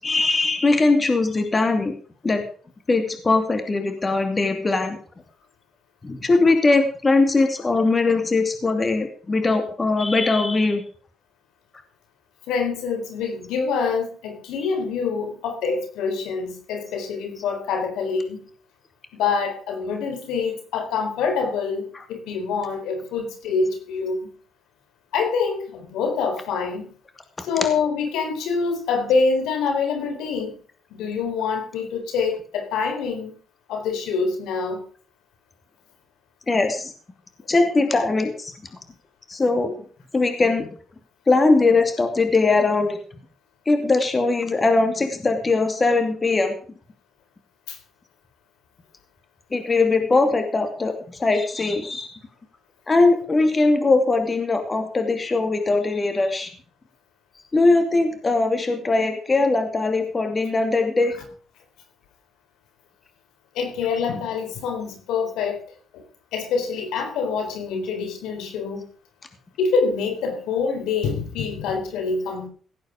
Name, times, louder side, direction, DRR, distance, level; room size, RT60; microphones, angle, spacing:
voice 1, 0.0-1.9 2.2-2.4 2.9-5.0 6.0-10.8 36.5-36.9 37.5-38.5 39.3-39.7 40.1-40.7 41.3-43.0 43.7-46.5 49.5-52.2 52.9-56.5 57.5-61.1, left 3 dB, 30° left, 6 dB, 2.7 m, -20 dB
voice 2, 12.5-18.4 19.1-24.3 25.1-26.9 27.4-30.5 30.9-33.3 33.7-34.8 47.7-47.8 63.5-65.6 65.9-66.0 66.3-68.9 69.6-72.5, left 5 dB, 90° left, 6 dB, 3.8 m, -25 dB
17.0 x 8.9 x 5.1 m, 0.43 s
cardioid pair, 90°, 0 cm